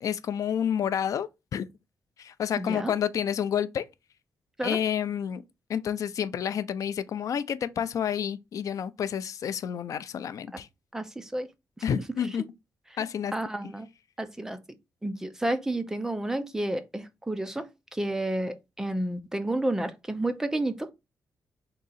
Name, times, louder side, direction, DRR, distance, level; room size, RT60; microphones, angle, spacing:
voice 1, 0.0-1.7 2.2-3.9 4.6-5.4 5.7-10.7 11.8-12.4 13.0-13.3, left 8 dB, 55° left, 0.4 m, -29 dB
voice 2, 2.6-2.9 4.6-4.8 10.9-11.5 13.3-13.9 14.2-14.6 15.0-20.9, right 1 dB, 5° right, 0.4 m, -31 dB
3.7 x 2.8 x 4.0 m
wide cardioid pair, 165°, 7 cm